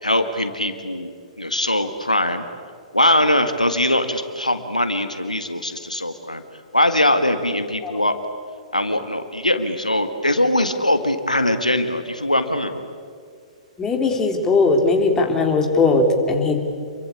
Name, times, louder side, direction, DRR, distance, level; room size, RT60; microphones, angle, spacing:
voice 1, 0.0-1.1 1.4-2.4 2.9-6.4 6.7-8.2 8.7-12.9, left 1 dB, 85° left, 8 dB, 1.7 m, -21 dB
voice 2, 13.8-16.6, left 3 dB, 15° left, 3 dB, 3.2 m, -18 dB
28.0 x 23.0 x 8.7 m, 2.2 s
figure-of-eight pair, 115°, 4 cm